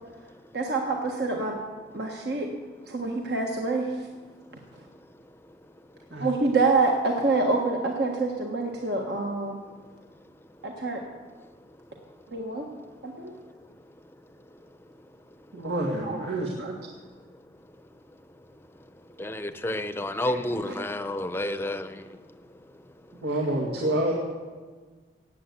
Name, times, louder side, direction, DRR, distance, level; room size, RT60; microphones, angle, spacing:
voice 1, 0.5-1.6 1.9-2.5 2.9-3.9 6.2-9.6 10.6-11.0 12.3-12.6 13.0-13.3 16.1-16.2 16.6-16.7, right 3 dB, 60° right, 1 dB, 1.5 m, -26 dB
voice 2, 15.5-16.5 23.2-24.2, right 1 dB, 80° right, -2 dB, 2.1 m, -27 dB
voice 3, 19.2-21.9, left 1 dB, 15° left, 10 dB, 0.7 m, -30 dB
17.5 x 8.0 x 8.3 m, 1.4 s
head